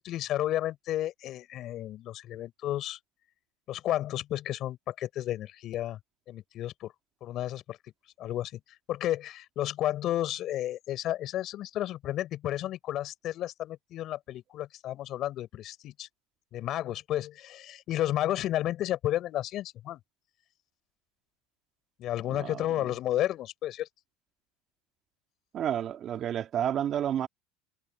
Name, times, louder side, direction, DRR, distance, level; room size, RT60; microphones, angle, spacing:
voice 1, 0.0-3.0 3.7-6.0 6.3-6.9 7.2-7.8 8.2-8.6 8.9-16.1 16.5-20.0 22.0-23.9, left 13 dB, 50° left, 6.1 m, -32 dB
voice 2, 22.3-22.6 25.5-27.3, right 10 dB, 45° right, 2.2 m, -30 dB
supercardioid pair, 105°, 0 cm